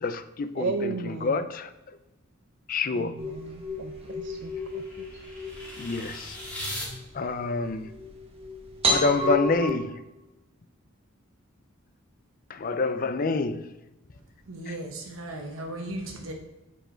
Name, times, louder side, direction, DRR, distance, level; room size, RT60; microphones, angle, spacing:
voice 1, 0.0-1.7 2.7-3.1 5.8-6.4 7.1-7.9 8.9-10.0 12.5-13.7, left 3 dB, 40° left, 11 dB, 0.4 m, -27 dB
voice 2, 0.6-1.4 2.9-4.8, right 4 dB, 60° right, 7 dB, 0.4 m, -34 dB
sound 1, 3.2-9.7, equal, 30° right, 1.1 m, -32 dB
sound 2, 3.3-6.9, left 1 dB, 5° left, 2.0 m, -40 dB
voice 3, 14.1-16.3, right 1 dB, 75° right, 1 dB, 1.0 m, -37 dB
7.8 x 4.6 x 4.4 m, 1.0 s
head